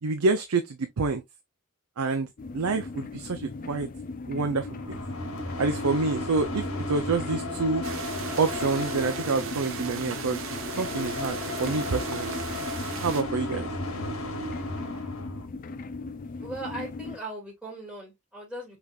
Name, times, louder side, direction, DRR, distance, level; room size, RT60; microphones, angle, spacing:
voice 1, 0.0-1.2 2.0-2.3 2.5-3.9 4.3-5.0 5.6-7.8 8.4-10.4 10.8-12.4 13.0-13.7, right 3 dB, 90° right, 0.6 m, -27 dB
sound 1, 2.4-17.2, left 3 dB, 40° left, 0.4 m, -39 dB
sound 2, 4.4-15.5, left 1 dB, 85° left, 1.7 m, -35 dB
sound 3, 7.8-13.2, right 6 dB, 65° right, 0.9 m, -37 dB
voice 2, 16.4-18.8, right 2 dB, 5° right, 2.3 m, -39 dB
5.1 x 3.4 x 2.4 m
head